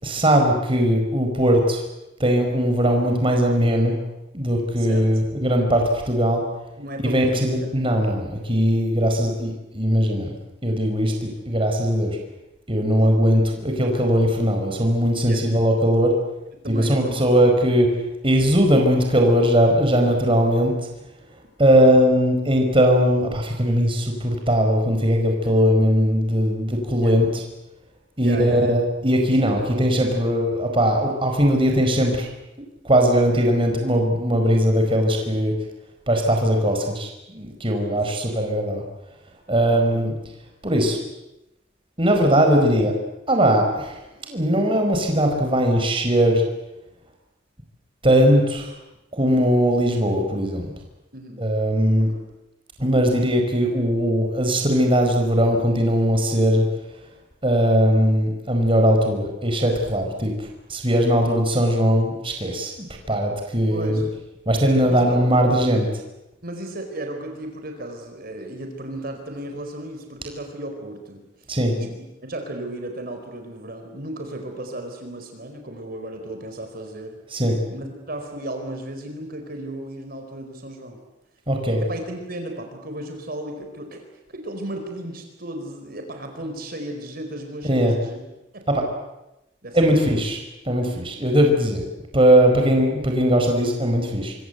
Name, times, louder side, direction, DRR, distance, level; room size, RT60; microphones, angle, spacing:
voice 1, 0.0-1.8 2.2-4.0 4.3-6.4 7.0-10.3 10.6-12.2 12.7-16.1 16.7-17.9 18.2-20.7 21.6-27.4 28.2-32.3 32.8-35.5 36.1-38.8 39.5-40.1 40.6-41.0 42.0-42.9 43.3-44.0 44.3-46.4 48.0-48.7 49.1-50.7 51.4-52.1 52.8-56.6 57.4-60.3 60.7-62.7 63.1-64.0 64.5-65.9 71.5-71.7 77.3-77.6 81.5-81.8 87.6-87.9 88.7-88.8 89.7-90.4 90.7-91.8 92.1-94.3, equal, 30° right, 3 dB, 4.8 m, -19 dB
voice 2, 4.8-5.1 6.8-8.2 13.0-13.2 15.2-15.5 16.6-17.3 27.0-27.3 28.2-28.7 29.3-29.5 37.9-38.8 39.7-40.1 51.1-51.5 52.0-52.2 63.7-64.1 64.8-65.2 66.4-71.3 71.7-77.2 77.7-81.0 81.8-88.2 88.5-88.7 89.6-90.2, right 1 dB, 55° right, 4 dB, 4.5 m, -35 dB
26.0 x 25.0 x 8.1 m, 0.93 s
head